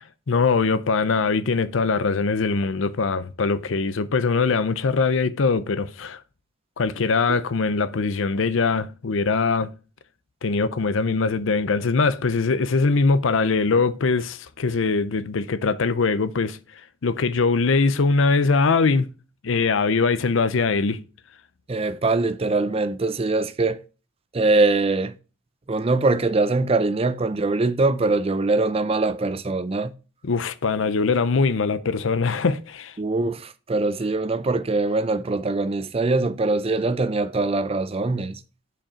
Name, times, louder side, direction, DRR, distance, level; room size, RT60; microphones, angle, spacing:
voice 1, 0.3-6.2 6.8-9.7 10.4-16.6 17.0-19.1 19.4-21.0 30.2-32.9, left 4 dB, 80° left, 0.6 m, -22 dB
voice 2, 21.7-23.8 24.3-25.2 25.7-29.9 33.0-38.4, right 3 dB, 30° right, 0.5 m, -22 dB
7.4 x 5.1 x 4.9 m
head